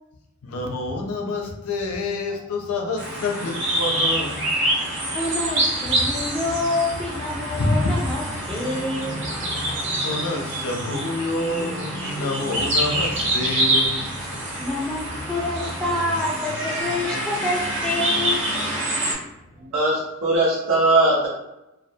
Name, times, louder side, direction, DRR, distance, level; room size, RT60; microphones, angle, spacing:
voice 1, 0.4-4.6 7.5-8.0 10.0-14.3, left 2 dB, 90° left, 1 dB, 0.5 m, -27 dB
Motorcycle, 2.1-19.9, equal, 45° left, 0.7 m, -39 dB
sound 1, 3.0-19.1, right 1 dB, 55° right, 0.8 m, -26 dB
voice 2, 5.1-9.2 14.6-18.4, left 2 dB, 5° left, -5 dB, 0.4 m, -27 dB
voice 3, 19.6-21.3, right 2 dB, 90° right, -8 dB, 0.6 m, -20 dB
2.2 x 2.2 x 2.6 m, 0.92 s
head